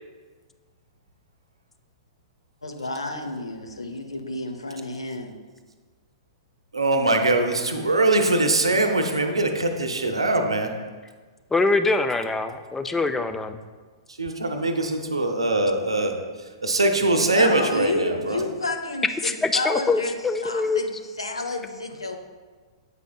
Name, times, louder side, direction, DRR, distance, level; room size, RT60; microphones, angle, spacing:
voice 1, 2.6-5.4 17.1-20.1 20.4-20.9 21.2-22.2, left 2 dB, 85° left, 5 dB, 0.6 m, -30 dB
voice 2, 6.7-10.7 14.2-16.2 16.6-18.4, right 2 dB, 85° right, 5 dB, 0.6 m, -22 dB
voice 3, 11.5-13.6 16.0-16.3 19.2-20.8, left 3 dB, 10° left, 8 dB, 0.3 m, -24 dB
8.2 x 5.0 x 2.2 m, 1.4 s
figure-of-eight pair, 110°, 3 cm